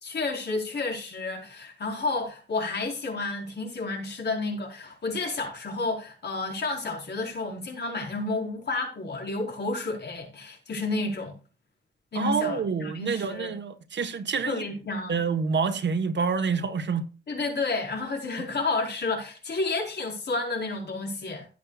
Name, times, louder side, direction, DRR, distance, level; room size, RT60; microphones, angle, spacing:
voice 1, 0.0-11.4 12.1-13.6 14.5-15.2 17.3-21.5, left 3 dB, 70° left, 4.8 m, -31 dB
voice 2, 12.1-14.6 15.1-17.1, right 5 dB, 80° right, 1.4 m, -27 dB
16.0 x 8.5 x 2.5 m
wide cardioid pair, 115°, 18 cm